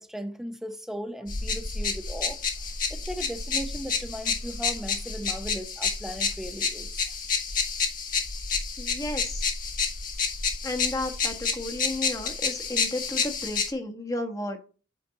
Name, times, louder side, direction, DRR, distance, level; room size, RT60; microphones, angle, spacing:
voice 1, 0.0-2.4 2.9-7.2, equal, ahead, 0.8 m, -37 dB
sound 1, 1.3-13.7, left 5 dB, 45° left, 1.5 m, -29 dB
voice 2, 8.8-9.5 10.6-14.6, left 1 dB, 20° left, 1.2 m, -33 dB
8.6 x 5.1 x 3.9 m
head